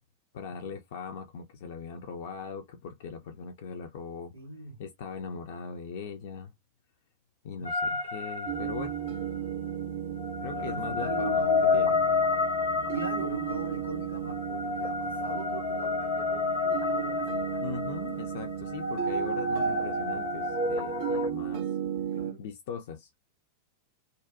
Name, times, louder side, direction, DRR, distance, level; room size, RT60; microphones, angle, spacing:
voice 1, 0.3-4.3 4.8-6.5 7.4-8.9 10.4-11.5 11.7-12.0 17.6-21.8 22.4-23.1, left 6 dB, 55° left, 0.3 m, -40 dB
voice 2, 4.3-4.8 7.6-8.0 10.5-12.2 12.7-17.5 22.0-22.4, right 2 dB, 90° left, 1.3 m, -40 dB
sound 1, 7.6-9.2 10.2-21.3, left 3 dB, 75° left, 1.0 m, -30 dB
sound 2, 8.5-22.3, right 10 dB, 45° right, 0.5 m, -35 dB
2.5 x 2.1 x 2.5 m
figure-of-eight pair, 90°, 0 cm